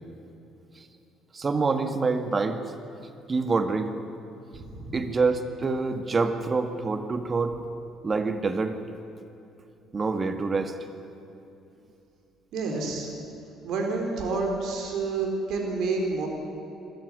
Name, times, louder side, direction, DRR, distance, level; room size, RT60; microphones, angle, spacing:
voice 1, 1.3-2.6 3.3-3.9 4.9-7.6 8.0-8.8 9.9-10.8, right 4 dB, 35° right, 8 dB, 1.8 m, -26 dB
voice 2, 4.5-4.9 12.5-13.1 13.6-16.3, right 3 dB, 60° right, 2 dB, 4.1 m, -29 dB
25.5 x 14.0 x 9.8 m, 2.8 s
figure-of-eight pair, 50°, 0 cm